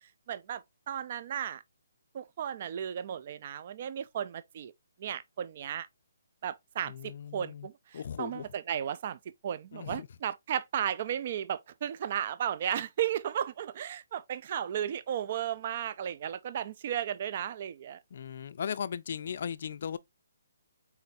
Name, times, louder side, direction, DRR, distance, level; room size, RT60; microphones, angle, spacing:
voice 1, 0.3-1.6 2.1-4.7 5.0-5.9 6.4-9.2 9.4-18.0, right 10 dB, 45° right, 0.3 m, -34 dB
voice 2, 6.8-7.7 7.9-8.5 9.7-10.1 18.1-20.0, left 7 dB, 55° left, 0.4 m, -37 dB
4.1 x 3.9 x 2.6 m
hypercardioid pair, 155°, 0 cm